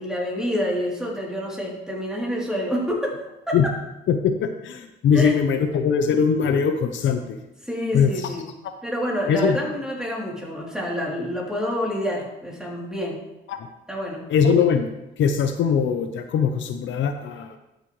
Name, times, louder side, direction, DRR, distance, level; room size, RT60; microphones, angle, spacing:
voice 1, 0.0-3.2 3.5-3.7 5.1-5.4 7.6-8.5 8.8-13.2 13.9-14.2, equal, 5° right, -4 dB, 3.1 m, -27 dB
voice 2, 4.1-7.2 7.9-8.1 9.3-9.6 13.5-13.6 14.3-14.9 15.2-17.6, left 6 dB, 75° left, 7 dB, 0.7 m, -21 dB
12.0 x 6.8 x 3.2 m, 0.93 s
cardioid pair, 90°, 20 cm